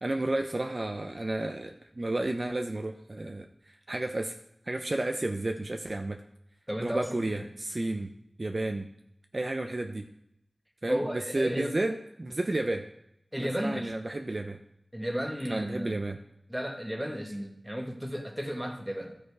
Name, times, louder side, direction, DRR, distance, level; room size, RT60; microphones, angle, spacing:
voice 1, 0.0-4.3 4.7-6.2 6.8-8.1 8.4-8.9 9.3-10.1 10.8-12.8 13.3-14.6 15.4-16.2, right 2 dB, 45° right, 4 dB, 0.7 m, -32 dB
voice 2, 6.7-7.4 10.9-11.8 13.3-13.9 14.9-16.0 16.5-19.2, equal, 10° right, 3 dB, 1.7 m, -33 dB
13.0 x 5.1 x 4.8 m, 0.78 s
wide cardioid pair, 50°, 0 cm